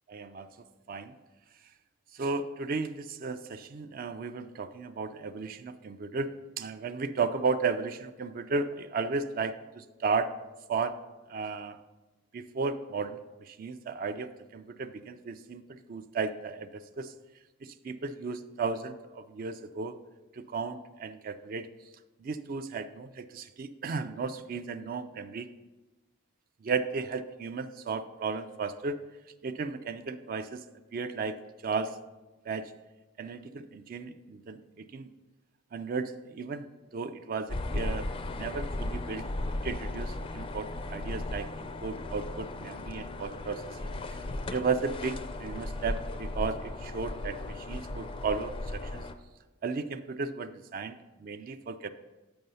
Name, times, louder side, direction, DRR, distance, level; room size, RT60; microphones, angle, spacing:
voice 1, 0.1-1.2 2.1-10.3 10.7-11.0 11.3-11.8 12.3-17.1 17.6-20.0 20.3-21.7 22.2-25.5 26.6-29.0 29.4-30.6 30.9-31.4 31.6-32.0 32.5-32.7 33.2-35.1 35.7-38.1 38.3-39.2 39.6-43.8 44.5-49.1 49.6-51.9, right 4 dB, 40° right, 11 dB, 0.4 m, -34 dB
sound 1, 37.5-49.1, left 2 dB, 25° left, 0.4 m, -36 dB
7.8 x 5.5 x 5.4 m, 1.1 s
head